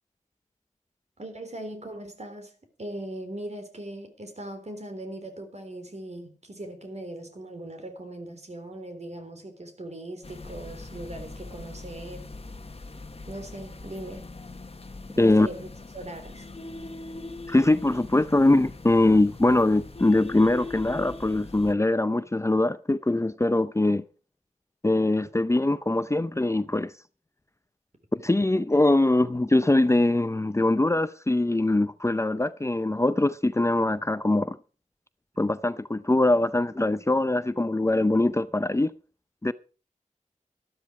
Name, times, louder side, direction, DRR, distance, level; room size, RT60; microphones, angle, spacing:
voice 1, 1.2-2.5 2.8-12.3 13.3-14.3 15.1-15.7 15.9-16.5, right 1 dB, 55° right, 3.5 m, -39 dB
sound 1, 10.2-21.7, left 3 dB, 45° left, 1.2 m, -41 dB
voice 2, 17.5-24.0 24.8-26.9 28.1-34.6 35.4-38.9 39.4-39.5, left 2 dB, 20° left, 0.5 m, -22 dB
13.0 x 12.5 x 4.9 m
wide cardioid pair, 75°, 13 cm